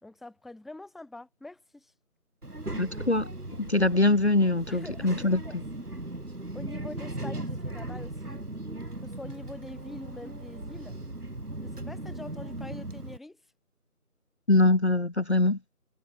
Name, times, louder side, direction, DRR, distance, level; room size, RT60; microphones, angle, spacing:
voice 1, 0.0-1.9 4.7-5.2 5.4-5.9 6.5-8.4 9.0-11.0 11.6-13.4, left 2 dB, ahead, 0.8 m, -44 dB
Child speech kid speaking, 2.4-13.2, right 2 dB, 85° right, 5.6 m, -38 dB
voice 2, 2.8-3.3 3.6-5.6 14.5-15.6, left 2 dB, 50° left, 0.6 m, -23 dB
figure-of-eight pair, 170°, 45 cm